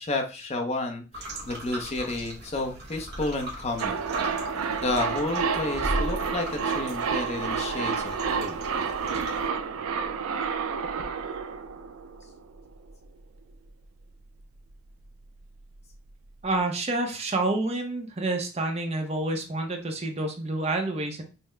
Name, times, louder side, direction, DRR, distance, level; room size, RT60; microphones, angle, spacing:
voice 1, 0.0-4.0 4.8-8.6, left 2 dB, 30° left, 2 dB, 0.6 m, -31 dB
sound 1, 1.1-9.5, right 1 dB, 50° right, 0.9 m, -38 dB
sound 2, 3.8-12.6 12.9-13.0, right 5 dB, 85° right, 0.4 m, -30 dB
voice 2, 16.4-21.2, right 2 dB, 30° right, 4 dB, 0.6 m, -28 dB
5.4 x 2.0 x 3.2 m, 0.34 s
head